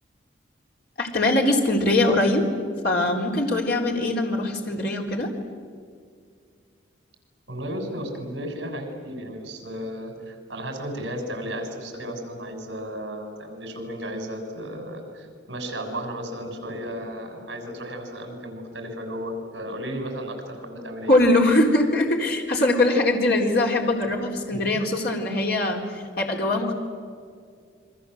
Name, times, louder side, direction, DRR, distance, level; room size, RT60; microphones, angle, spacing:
voice 1, 1.0-2.5 2.8-5.3 21.1-26.7, left 1 dB, 55° left, 0 dB, 4.0 m, -22 dB
voice 2, 7.5-21.1 24.5-24.8, equal, 65° right, 4 dB, 6.6 m, -34 dB
29.0 x 23.5 x 8.0 m, 2.1 s
head